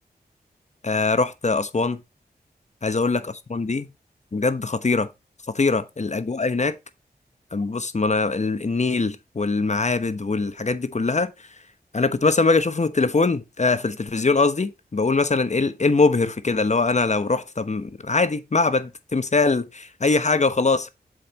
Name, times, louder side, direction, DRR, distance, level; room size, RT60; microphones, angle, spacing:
voice 1, 0.8-2.0 2.8-3.9 4.3-5.1 5.5-6.8 7.5-11.3 11.9-20.9, left 3 dB, 45° left, 1.0 m, -22 dB
7.6 x 5.3 x 4.2 m
cardioid pair, 55°, 17 cm